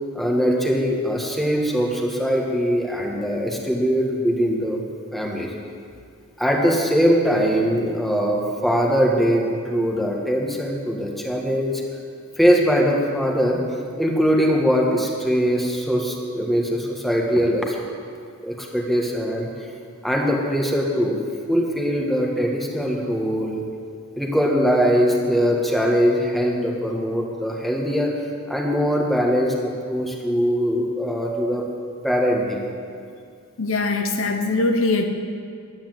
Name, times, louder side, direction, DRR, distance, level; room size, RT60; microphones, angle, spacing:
voice 1, 0.1-4.8 5.1-5.5 6.4-11.8 12.4-13.6 14.0-17.8 18.4-19.5 20.0-21.2 21.5-23.6 24.2-28.1 28.5-31.6 32.0-32.7, equal, ahead, -1 dB, 1.4 m, -21 dB
voice 2, 33.6-35.1, left 3 dB, 65° left, 5 dB, 0.9 m, -21 dB
11.5 x 9.6 x 7.8 m, 2.3 s
head